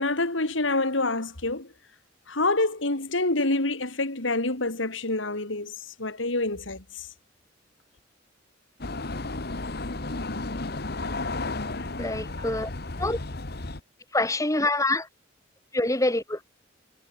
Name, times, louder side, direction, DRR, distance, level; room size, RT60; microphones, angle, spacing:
voice 1, 0.0-1.7 2.3-7.1, left 2 dB, 80° left, 3.3 m, -27 dB
sound 1, 8.8-13.8, left 2 dB, 55° left, 1.5 m, -33 dB
voice 2, 12.0-12.7 13.0-13.2 14.1-15.1 15.7-16.4, left 2 dB, 15° left, 2.9 m, -25 dB
head